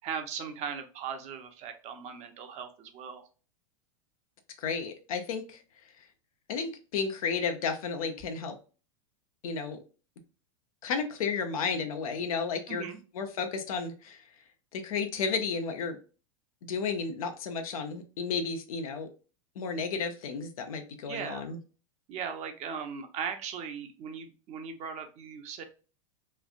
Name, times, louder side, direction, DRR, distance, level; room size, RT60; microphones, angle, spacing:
voice 1, 0.0-3.3 12.7-13.0 21.1-21.5 22.1-25.6, right 7 dB, 40° right, 6 dB, 0.7 m, -38 dB
voice 2, 4.6-5.6 6.5-8.6 9.4-9.8 10.8-12.8 13.1-14.2 14.7-16.0 16.7-19.1 19.6-21.6, left 5 dB, 85° left, 6 dB, 0.7 m, -32 dB
3.2 x 2.4 x 2.4 m, 0.35 s
hypercardioid pair, 115°, 18 cm